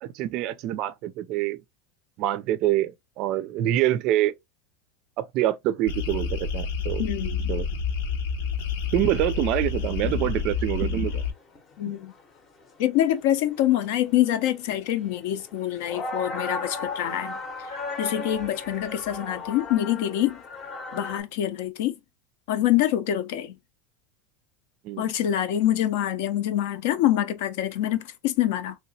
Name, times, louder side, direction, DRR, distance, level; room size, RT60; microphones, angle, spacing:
voice 1, 0.0-1.6 2.2-4.3 5.2-7.0 7.5-7.7 8.9-11.2 24.8-25.1, right 13 dB, 45° right, 0.4 m, -26 dB
sound 1, 5.9-11.3, left 5 dB, 80° left, 0.9 m, -29 dB
voice 2, 7.0-7.5 11.8-12.1 12.8-17.4 18.0-20.4 20.9-21.9 22.5-23.6 25.0-28.8, left 12 dB, 60° left, 0.6 m, -25 dB
sound 2, 9.2-9.3 9.7-9.8 10.0-10.4 10.9-12.3 12.6-21.2, left 3 dB, 25° left, 0.7 m, -36 dB
3.1 x 2.9 x 2.7 m
supercardioid pair, 165°, 0 cm